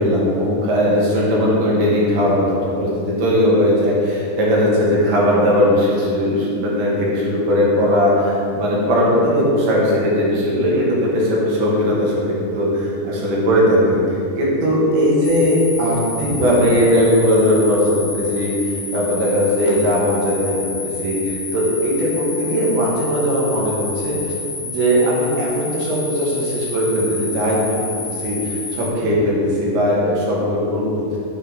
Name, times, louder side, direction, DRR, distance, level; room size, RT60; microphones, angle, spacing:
voice 1, 0.0-14.0 14.4-20.6 21.0-24.2 24.6-31.2, equal, 65° right, -5 dB, 2.7 m, -18 dB
sound 1, 15.2-28.9, left 3 dB, 80° left, 1.4 m, -30 dB
7.6 x 4.7 x 4.0 m, 2.5 s
omnidirectional pair, 4.5 m